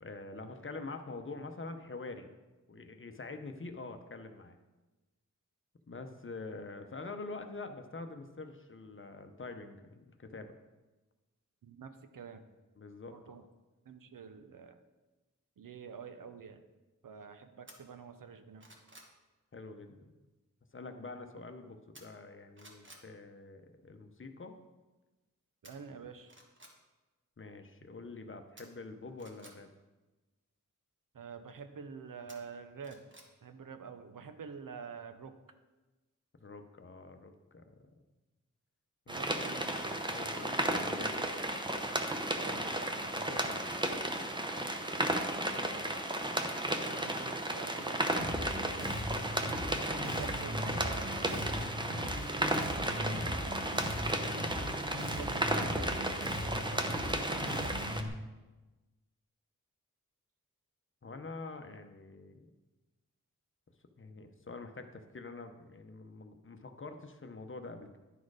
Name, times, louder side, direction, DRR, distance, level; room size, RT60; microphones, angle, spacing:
voice 1, 0.0-2.3 2.7-4.6 5.9-10.6 12.8-13.5 19.5-20.1 20.7-24.6 27.4-29.7 36.4-37.7 39.1-39.2 40.0-41.5 42.5-43.9 45.5-45.9 48.4-48.6 61.0-62.5 64.0-68.0, left 3 dB, 40° left, 6 dB, 0.7 m, -46 dB
voice 2, 11.6-12.4 13.1-13.4 13.8-14.8 15.6-16.6 17.0-18.7 25.6-26.3 31.1-33.1 33.4-35.4 39.1-40.0 42.4-42.7 46.8-48.0 49.9-51.8 52.7-53.6 55.1-57.9, right 6 dB, 90° right, 8 dB, 0.7 m, -48 dB
sound 1, 17.7-17.8 18.3-19.1 21.9-22.3 22.6-23.1 25.6-25.7 26.2-26.7 28.6-29.5 32.3-33.3 33.7-33.8, right 1 dB, 35° right, 1.3 m, -55 dB
sound 2, 39.1-58.0, right 1 dB, 15° right, 0.7 m, -34 dB
Bass guitar, 48.2-58.1, left 1 dB, 75° right, 2.0 m, -39 dB
10.5 x 4.3 x 4.8 m, 1.2 s
wide cardioid pair, 90°, 32 cm